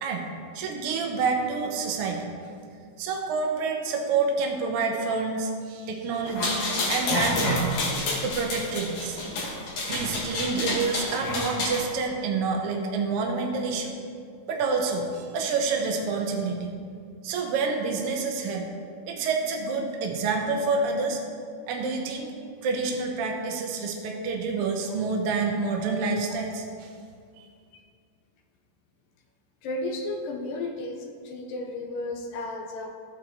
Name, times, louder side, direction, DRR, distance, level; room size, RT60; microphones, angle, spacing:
voice 1, 0.5-2.3 3.0-7.8 8.2-9.4 9.9-14.0 14.5-16.7 17.2-18.7 19.1-21.2 21.7-22.3 22.6-26.9 27.4-27.5, right 4 dB, 80° right, 1 dB, 1.3 m, -28 dB
sound 1, 6.3-11.8, left 2 dB, 65° left, 2.9 m, -29 dB
voice 2, 29.6-32.9, left 2 dB, 85° left, 2 dB, 2.6 m, -33 dB
15.0 x 8.2 x 3.0 m, 2.2 s
omnidirectional pair, 3.8 m